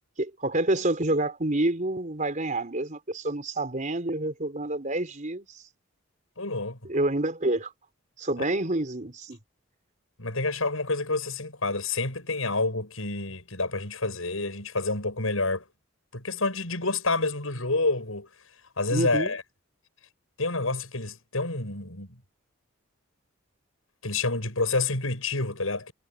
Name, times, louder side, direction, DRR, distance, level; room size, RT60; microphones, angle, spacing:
voice 1, 0.2-5.6 6.8-7.7 8.2-9.4 18.9-19.4, right 2 dB, 40° right, 4.3 m, -28 dB
voice 2, 6.4-6.8 8.4-8.5 10.2-15.6 16.1-18.3 18.8-19.4 20.4-22.2 24.0-25.9, left 3 dB, 85° left, 7.2 m, -28 dB
head